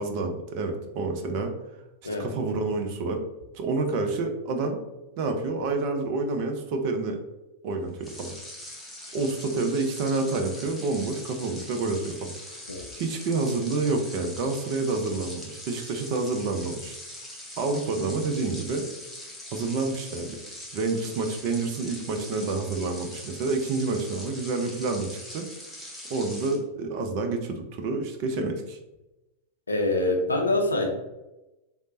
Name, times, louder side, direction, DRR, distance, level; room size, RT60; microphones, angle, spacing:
voice 1, 0.0-1.5 2.2-3.2 3.5-4.8 5.2-7.2 7.6-8.3 9.1-12.7 13.0-17.0 17.6-18.8 19.5-20.4 20.7-25.5 26.1-28.8, right 3 dB, 45° right, 5 dB, 0.4 m, -28 dB
sound 1, 8.0-26.6, left 1 dB, 5° left, 0.7 m, -42 dB
voice 2, 29.7-30.9, left 2 dB, 80° left, 2 dB, 0.5 m, -25 dB
3.1 x 2.0 x 2.6 m, 0.98 s
figure-of-eight pair, 95°, 0 cm